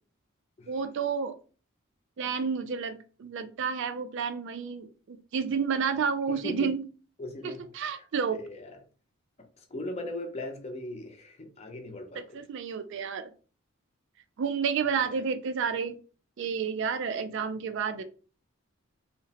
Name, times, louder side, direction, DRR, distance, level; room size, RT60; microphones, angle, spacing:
voice 1, 0.7-1.3 2.2-6.8 7.4-8.4 12.2-13.3 14.4-16.0 16.4-18.0, right 6 dB, 55° right, 0.3 m, -30 dB
voice 2, 7.2-7.6 7.9-8.0 8.3-8.8 9.7-12.2 14.9-15.1, left 2 dB, 30° left, 0.4 m, -38 dB
2.8 x 2.0 x 2.8 m
head